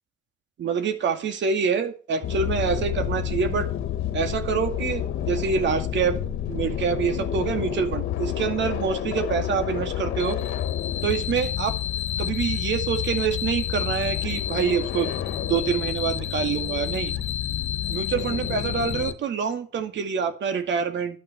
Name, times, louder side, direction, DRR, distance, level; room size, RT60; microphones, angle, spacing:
voice 1, 0.6-3.7 4.1-6.2 6.5-10.4 11.0-11.7 12.2-15.1 15.5-17.1 17.9-21.2, right 6 dB, 65° right, 7 dB, 2.4 m, -26 dB
sound 1, 2.2-19.1, left 10 dB, 80° left, 1.3 m, -29 dB
12.0 x 6.4 x 8.4 m, 0.38 s
cardioid pair, 90°, 20 cm